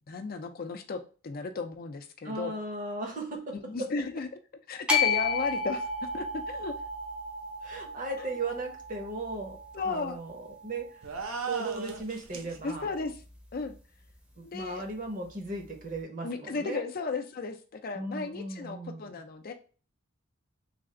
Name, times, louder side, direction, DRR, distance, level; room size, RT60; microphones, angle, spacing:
voice 1, 0.1-2.6 3.7-4.3 4.7-6.7 8.2-8.3 9.7-10.2 12.6-13.1 13.5-13.7 14.4-14.8 16.2-19.5, left 4 dB, 45° left, 6 dB, 0.4 m, -35 dB
voice 2, 2.2-3.9 7.6-9.6 9.8-11.0 11.4-12.9 14.5-16.8 17.9-19.2, right 2 dB, 40° right, 4 dB, 0.8 m, -37 dB
sound 1, 4.9-11.1, left 4 dB, 5° right, 0.6 m, -33 dB
sound 2, 11.0-12.6, right 5 dB, 85° right, 0.7 m, -37 dB
3.3 x 2.4 x 3.6 m, 0.37 s
head